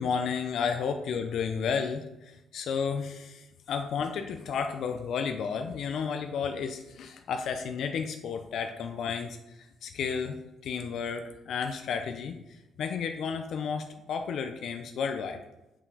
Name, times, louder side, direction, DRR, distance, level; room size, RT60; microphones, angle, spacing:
voice 1, 0.0-15.4, left 6 dB, 70° left, 6 dB, 0.5 m, -32 dB
5.5 x 5.3 x 4.8 m, 0.94 s
cardioid pair, 90°, 0 cm